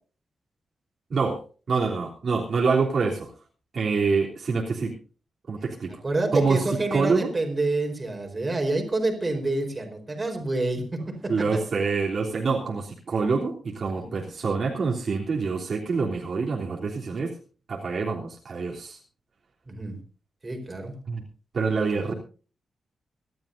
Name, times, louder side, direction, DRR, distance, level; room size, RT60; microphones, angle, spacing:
voice 1, 1.7-3.3 3.7-4.9 5.5-5.9 6.3-7.3 11.3-17.3 17.7-19.0 21.1-21.2 21.5-22.1, right 4 dB, 55° right, -2 dB, 3.3 m, -26 dB
voice 2, 6.0-11.6 14.0-14.1 19.7-20.0 20.4-20.9 22.1-22.2, right 2 dB, 25° right, 3 dB, 4.4 m, -28 dB
26.0 x 12.0 x 2.7 m, 0.38 s
wide cardioid pair, 130°, 0 cm